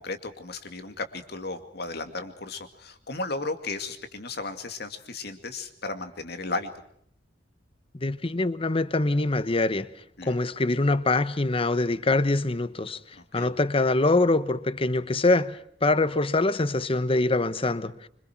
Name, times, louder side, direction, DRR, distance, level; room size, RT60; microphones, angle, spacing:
voice 1, 0.0-6.7 10.2-10.4 13.1-13.5, left 3 dB, 65° left, 2.4 m, -35 dB
voice 2, 8.0-9.9 10.2-13.0 13.3-17.9, left 2 dB, 30° left, 1.0 m, -24 dB
26.0 x 25.5 x 4.6 m
head